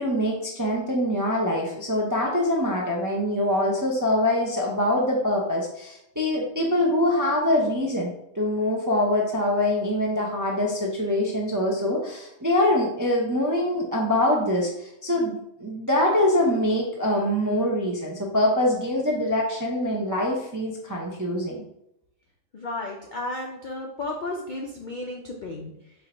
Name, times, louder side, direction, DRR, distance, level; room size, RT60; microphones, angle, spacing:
voice 1, 0.0-21.6, left 1 dB, 25° right, -2 dB, 0.4 m, -24 dB
voice 2, 22.5-25.9, left 2 dB, 60° left, 0 dB, 0.5 m, -33 dB
4.5 x 2.6 x 4.3 m, 0.82 s
omnidirectional pair, 1.5 m